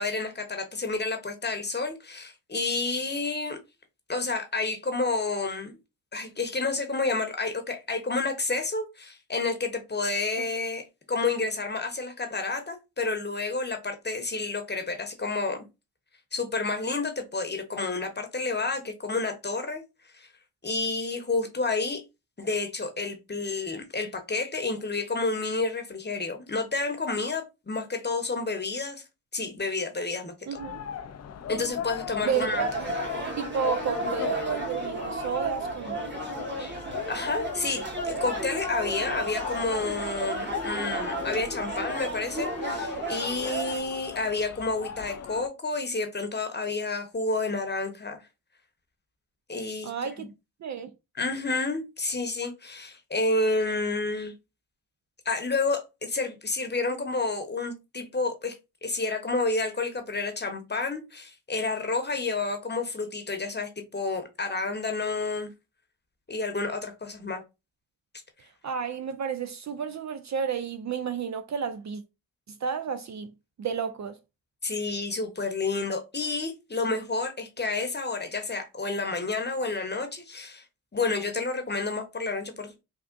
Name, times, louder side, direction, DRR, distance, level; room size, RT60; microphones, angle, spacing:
voice 1, 0.0-3.6 4.1-5.8 6.1-15.6 16.3-19.8 20.1-20.3 20.6-22.0 22.4-29.0 29.3-30.3 31.5-32.6 36.6-36.8 37.1-48.2 49.5-49.9 50.2-50.3 51.2-54.3 55.2-58.6 58.8-65.5 66.3-67.4 74.6-80.6 80.9-82.7, left 3 dB, 25° left, 0.9 m, -30 dB
voice 2, 30.5-30.8 32.2-32.7 33.4-36.0 49.8-50.3 50.6-50.9 68.6-72.0 72.6-73.3 73.6-74.2, right 7 dB, 45° right, 0.4 m, -31 dB
sound 1, 30.6-45.5, left 8 dB, 40° left, 0.4 m, -38 dB
sound 2, 32.2-43.8, right 2 dB, 25° right, 1.4 m, -34 dB
3.4 x 2.4 x 2.5 m
supercardioid pair, 40°, 40 cm